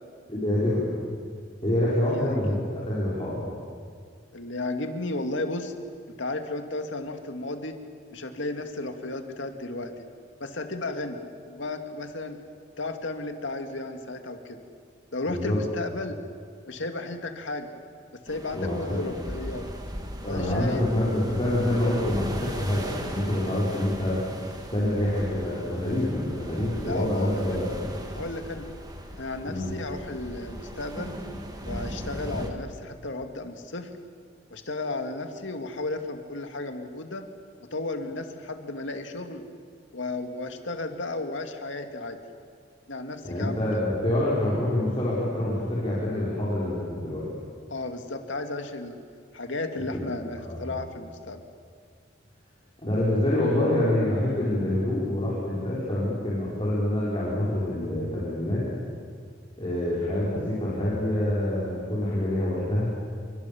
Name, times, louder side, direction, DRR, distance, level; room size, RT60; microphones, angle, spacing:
voice 1, 0.3-0.8 1.6-3.4 15.3-15.6 18.5-19.2 20.2-24.2 24.7-27.9 29.4-29.7 43.2-47.3 49.9-50.1 50.4-50.6 52.8-58.7 59.6-62.9, left 1 dB, 30° left, -8 dB, 5.7 m, -26 dB
voice 2, 2.0-2.6 4.3-5.7 6.2-7.8 8.1-10.1 10.4-12.4 12.8-14.6 15.1-16.2 16.7-17.7 18.2-19.7 20.3-20.8 26.8-27.6 28.1-28.7 29.2-31.2 31.6-33.9 34.5-37.3 37.7-39.4 39.9-42.2 42.9-43.6 47.7-49.0 49.3-51.4, left 2 dB, 70° left, 5 dB, 2.3 m, -34 dB
sound 1, 18.3-32.5, equal, 20° right, 2.5 m, -38 dB
27.5 x 24.0 x 7.2 m, 2.1 s
head